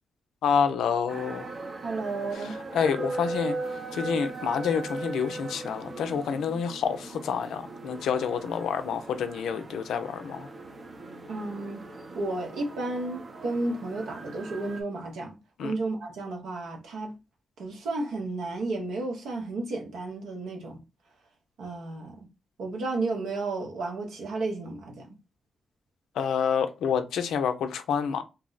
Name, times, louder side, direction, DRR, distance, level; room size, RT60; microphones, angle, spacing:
voice 1, 0.4-1.5 2.7-3.6 3.9-10.5 15.6-15.7 26.2-28.2, left 7 dB, 85° left, 0.4 m, -28 dB
sound 1, 1.1-14.8, right 2 dB, 50° right, 0.6 m, -39 dB
voice 2, 1.8-2.6 11.3-11.8 12.1-15.4 15.6-17.1 17.6-20.8 21.6-22.3 22.6-25.1, right 2 dB, 85° right, 0.7 m, -32 dB
2.7 x 2.0 x 3.8 m
supercardioid pair, 45°, 0 cm